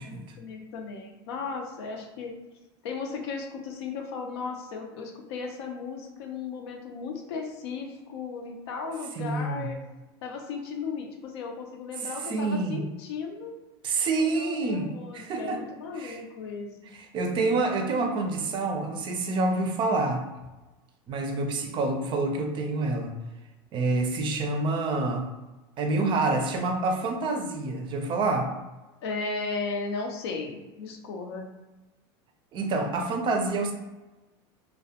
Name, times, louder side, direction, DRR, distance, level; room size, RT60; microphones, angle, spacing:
voice 1, 0.0-2.4 2.8-9.8 10.2-13.6 14.2-16.8 29.0-31.5, left 4 dB, 80° left, 3 dB, 0.5 m, -36 dB
voice 2, 9.2-9.7 12.3-12.8 13.8-14.9 15.1-15.6 16.0-16.2 17.1-20.2 21.1-23.2 23.7-25.3 25.8-28.5 32.5-33.7, right 3 dB, 35° right, 4 dB, 0.4 m, -27 dB
2.3 x 2.1 x 2.8 m, 1.1 s
supercardioid pair, 120°, 13 cm